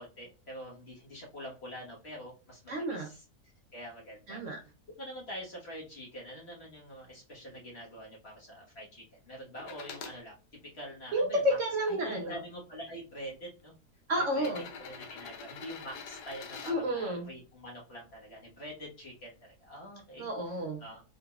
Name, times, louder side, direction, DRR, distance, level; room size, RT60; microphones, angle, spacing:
voice 1, 0.0-2.6 3.0-3.2 3.7-4.5 5.0-10.3 10.7-11.4 11.9-13.7 14.2-14.5 14.8-20.3 20.8-21.0, equal, 45° left, -3 dB, 1.5 m, -45 dB
voice 2, 2.7-3.1 4.3-4.6 11.1-12.4 14.1-14.7 16.7-17.3 20.2-20.8, equal, 60° right, 2 dB, 1.0 m, -31 dB
sound 1, 9.6-10.2 10.9-11.9 12.9-13.0 14.3-16.8 18.6-18.7, left 6 dB, 90° left, 1.3 m, -45 dB
3.9 x 3.8 x 2.3 m, 0.31 s
omnidirectional pair, 1.7 m